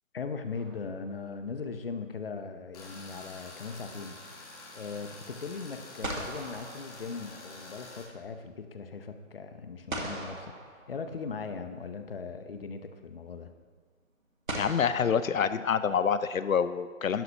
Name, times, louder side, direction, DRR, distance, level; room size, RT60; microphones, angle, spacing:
voice 1, 0.1-4.2 4.7-13.5, left 5 dB, 45° left, 8 dB, 0.8 m, -39 dB
sound 1, 0.5-1.4 5.5-5.6 6.0-7.7 9.9-11.5 12.8-12.9 14.5-16.1, right 1 dB, 90° right, 1.9 m, -40 dB
Tools, 2.7-8.0, left 2 dB, 30° left, 1.8 m, -47 dB
voice 2, 14.6-17.2, left 7 dB, 80° left, 14 dB, 0.6 m, -27 dB
11.5 x 9.4 x 2.8 m, 1.5 s
figure-of-eight pair, 150°, 40 cm